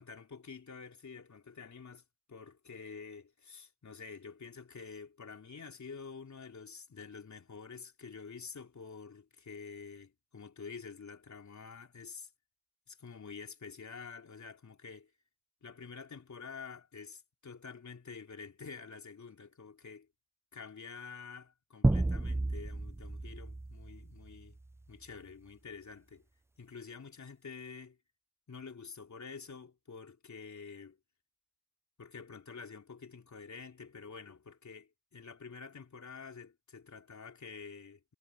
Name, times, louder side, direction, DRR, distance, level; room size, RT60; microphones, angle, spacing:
voice 1, 0.0-2.0 2.3-12.3 12.9-15.1 15.6-20.1 20.5-24.6 24.9-26.2 26.6-28.0 28.5-31.0 32.0-38.1, left 5 dB, 40° left, 3.3 m, -48 dB
sound 1, 21.8-24.7, right 2 dB, 5° right, 0.4 m, -32 dB
cardioid pair, 70°, 42 cm